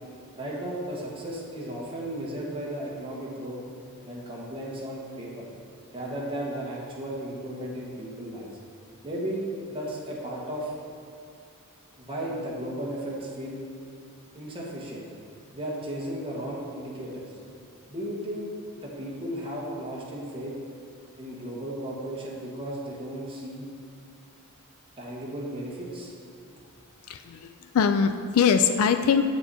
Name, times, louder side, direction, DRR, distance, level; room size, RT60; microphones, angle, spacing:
voice 1, 0.3-3.6 4.1-5.4 5.9-8.5 9.0-10.7 12.0-13.6 14.3-15.0 15.5-17.3 17.9-20.5 21.2-23.7 25.0-26.1, right 1 dB, 25° right, -5 dB, 1.4 m, -35 dB
voice 2, 27.1-29.2, left 6 dB, 70° left, 8 dB, 0.4 m, -22 dB
8.1 x 6.7 x 4.1 m, 2.5 s
head